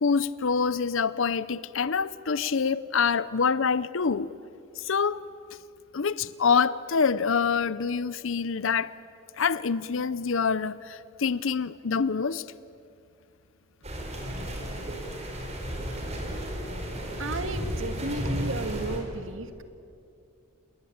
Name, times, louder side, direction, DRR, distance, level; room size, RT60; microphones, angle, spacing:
voice 1, 0.0-4.3 4.8-5.2 5.9-8.9 9.4-12.4, left 5 dB, 60° left, 17 dB, 0.6 m, -26 dB
sound 1, 13.8-19.0, equal, 30° right, 4.8 m, -33 dB
voice 2, 17.2-19.6, right 2 dB, 60° right, 9 dB, 1.9 m, -33 dB
28.5 x 21.0 x 8.7 m, 2.5 s
head